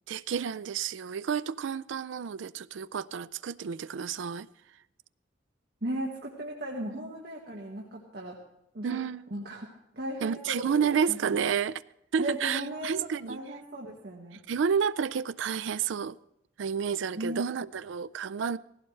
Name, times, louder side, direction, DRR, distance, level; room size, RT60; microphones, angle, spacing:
voice 1, 0.1-4.5 7.0-7.1 8.8-9.2 10.2-11.8 12.1-13.4 14.5-16.2 16.6-18.6, right 7 dB, 80° right, 0.4 m, -30 dB
voice 2, 5.8-8.4 8.7-9.0 9.3-11.2 12.2-14.4 17.1-17.5, right 1 dB, 60° right, 1.7 m, -37 dB
18.0 x 16.0 x 3.3 m
head